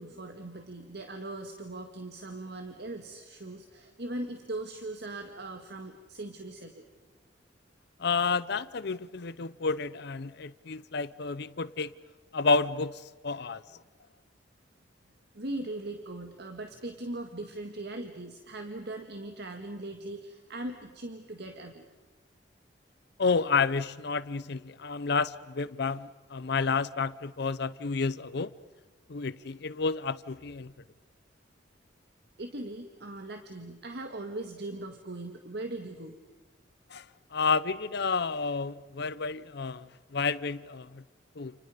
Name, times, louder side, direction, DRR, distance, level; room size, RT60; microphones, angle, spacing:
voice 1, 0.0-6.9 15.3-21.8 32.4-36.2, right 2 dB, 65° right, 2.0 m, -39 dB
voice 2, 8.0-11.9 12.3-13.6 23.2-28.5 29.1-30.7 36.9-37.0 37.3-39.9 40.1-41.0 41.4-41.5, left 4 dB, 65° left, 0.7 m, -30 dB
30.0 x 29.5 x 5.1 m
head